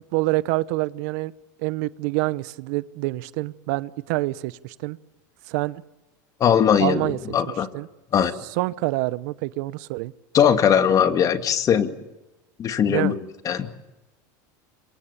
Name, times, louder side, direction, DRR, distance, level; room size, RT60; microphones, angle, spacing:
voice 1, 0.1-1.3 1.6-5.0 5.5-5.8 6.8-7.2 7.7-7.9 8.6-10.1 12.9-13.2, right 20 dB, 70° right, 18 dB, 0.9 m, -26 dB
voice 2, 6.4-7.7 8.1-8.3 10.3-12.0 12.6-13.2 13.5-13.7, left 8 dB, 35° left, 8 dB, 2.2 m, -20 dB
27.0 x 24.5 x 7.0 m, 1.0 s
supercardioid pair, 115°, 10 cm